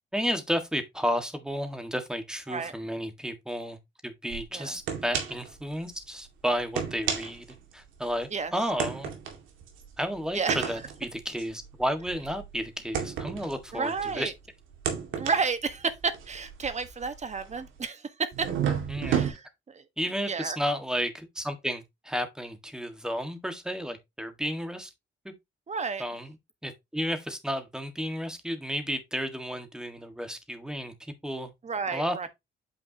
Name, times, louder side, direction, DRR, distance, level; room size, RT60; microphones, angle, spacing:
voice 1, 0.1-3.8 4.0-7.5 7.7-9.1 10.0-14.3 18.9-19.2 20.0-24.9 25.2-25.3 26.0-26.3 26.6-31.5 31.9-32.2, equal, 5° right, 1.6 m, -32 dB
sound 1, 4.3-4.4 4.9-5.5 5.9-6.0 6.6-8.2 8.8-14.3 14.7-17.8 18.3-19.3, right 8 dB, 80° right, 2.1 m, -32 dB
voice 2, 10.3-10.7 13.7-14.3 15.2-18.5 19.0-19.8 20.3-20.6 25.7-26.0 31.6-32.3, right 5 dB, 35° right, 1.3 m, -31 dB
8.7 x 5.1 x 2.8 m
cardioid pair, 90°, 20 cm